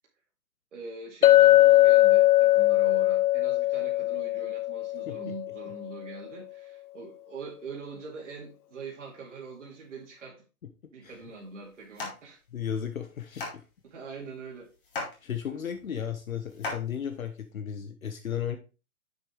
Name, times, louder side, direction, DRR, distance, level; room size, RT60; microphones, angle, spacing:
voice 1, 0.7-10.4 10.9-12.4 13.8-14.7, right 4 dB, 55° right, -3 dB, 2.3 m, -43 dB
Chink clink, 1.2-5.7, left 15 dB, 80° left, 0.7 m, -20 dB
sound 1, 11.0-17.5, left 3 dB, 35° left, 2.4 m, -41 dB
voice 2, 12.5-13.4 15.2-18.6, left 8 dB, 65° left, 7 dB, 1.1 m, -34 dB
7.1 x 7.0 x 3.2 m, 0.31 s
hypercardioid pair, 180°, 45 cm